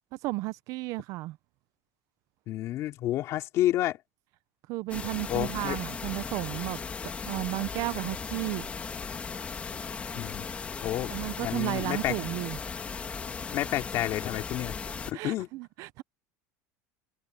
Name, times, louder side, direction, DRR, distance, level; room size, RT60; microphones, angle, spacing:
voice 1, 0.2-1.4 4.7-6.8 7.2-8.7 11.1-12.6 15.1-16.0, right 20 dB, 45° right, 0.6 m, -33 dB
voice 2, 2.5-4.0 5.3-5.8 10.1-10.5 10.8-12.2 13.5-14.8 15.1-15.5, left 14 dB, 40° left, 3.0 m, -30 dB
sound 1, 4.9-15.1, left 5 dB, 15° left, 1.7 m, -37 dB
cardioid pair, 165°, 8 cm